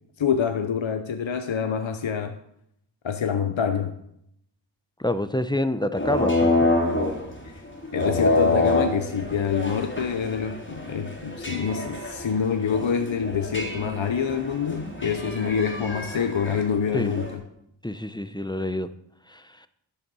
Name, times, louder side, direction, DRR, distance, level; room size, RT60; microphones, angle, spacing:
voice 1, 0.2-2.4 3.0-3.9 7.4-7.6 7.9-17.4, left 7 dB, 75° left, 0.8 m, -26 dB
voice 2, 5.0-6.7 16.9-17.1 17.8-18.9 19.3-19.7, left 1 dB, 10° left, 0.7 m, -27 dB
sound 1, 6.0-17.3, left 2 dB, 25° left, 3.8 m, -27 dB
12.0 x 6.8 x 6.2 m
wide cardioid pair, 55°, 47 cm